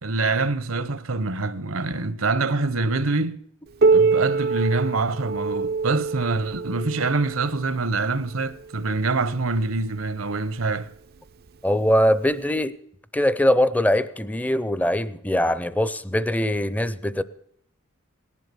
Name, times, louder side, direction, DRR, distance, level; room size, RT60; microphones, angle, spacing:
voice 1, 0.0-3.4 3.9-10.9, right 3 dB, 70° right, 1.0 m, -25 dB
Piano, 3.8-9.1 10.0-10.1 10.6-10.7 11.5-11.6 12.6-12.7, right 4 dB, 50° right, 0.5 m, -24 dB
voice 2, 11.6-12.7 13.1-17.2, equal, 10° left, 0.6 m, -22 dB
18.0 x 11.0 x 6.9 m
head